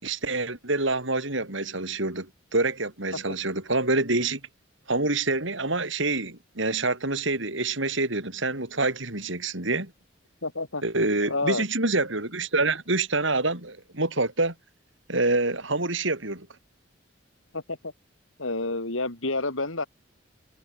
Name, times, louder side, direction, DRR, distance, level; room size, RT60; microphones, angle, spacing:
voice 1, 0.0-4.4 4.9-9.9 10.8-14.5 15.1-16.5, right 2 dB, 70° right, 5.1 m, -26 dB
voice 2, 10.4-10.8 11.2-11.7 17.5-17.9 18.4-19.9, left 2 dB, 80° left, 3.8 m, -29 dB
head